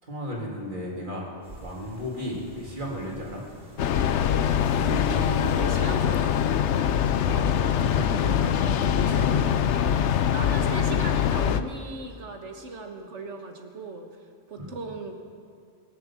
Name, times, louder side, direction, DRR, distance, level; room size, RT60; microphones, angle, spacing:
voice 1, 0.0-1.3 1.6-3.4 7.2-9.7 14.5-14.7, left 1 dB, 45° right, -3 dB, 3.0 m, -34 dB
sound 1, 1.4-6.6, right 3 dB, 65° right, 4.8 m, -41 dB
Train, 3.8-11.6, left 9 dB, 80° left, 0.9 m, -23 dB
voice 2, 4.7-6.4 9.7-14.1 14.5-15.2, right 3 dB, 90° right, 4 dB, 1.7 m, -38 dB
22.0 x 7.3 x 7.5 m, 2.2 s
omnidirectional pair, 1.2 m